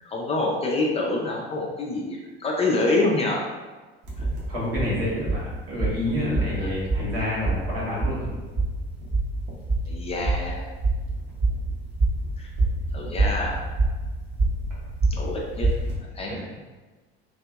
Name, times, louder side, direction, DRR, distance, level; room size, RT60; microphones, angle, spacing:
voice 1, 0.0-3.5 4.2-4.3 6.6-6.7 9.9-10.7 12.4-12.5 12.9-13.6 15.1-15.7 16.1-16.5, left 2 dB, 20° left, -2 dB, 0.4 m, -26 dB
sound 1, 4.0-16.0, right 2 dB, 50° right, 0.9 m, -27 dB
voice 2, 4.5-8.3 16.3-16.4, left 1 dB, 70° right, -7 dB, 1.2 m, -28 dB
2.6 x 2.6 x 2.3 m, 1.3 s
figure-of-eight pair, 60°, 30 cm